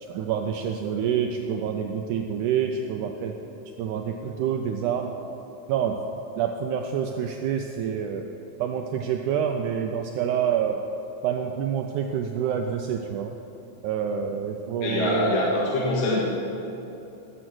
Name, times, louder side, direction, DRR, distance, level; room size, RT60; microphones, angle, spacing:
voice 1, 0.0-3.4 3.8-5.2 5.7-6.0 6.4-8.3 8.6-10.8 11.2-13.4 13.8-15.4, right 8 dB, 85° right, 4 dB, 1.8 m, -27 dB
voice 2, 14.8-16.2, left 2 dB, 70° left, -5 dB, 3.4 m, -24 dB
19.0 x 7.6 x 6.2 m, 3.0 s
omnidirectional pair, 4.2 m